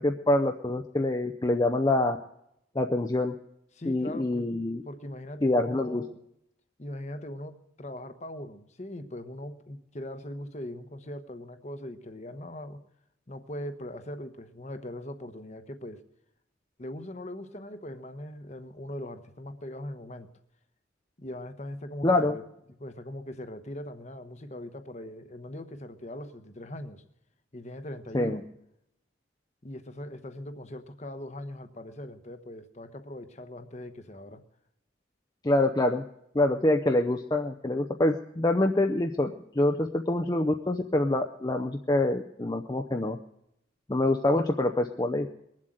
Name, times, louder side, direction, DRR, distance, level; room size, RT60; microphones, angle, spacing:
voice 1, 0.0-2.2 2.7-3.4 3.9-4.8 5.4-6.1 22.0-22.3 28.1-28.4 35.4-36.0 36.3-43.2 43.9-45.3, left 1 dB, 20° left, 4 dB, 0.6 m, -26 dB
voice 2, 3.7-4.4 4.8-6.2 6.8-12.8 13.3-16.0 16.8-20.3 21.2-22.4 22.8-27.0 27.5-28.4 29.6-34.4, left 1 dB, 35° left, 9 dB, 1.0 m, -40 dB
21.0 x 7.6 x 7.7 m, 0.79 s
head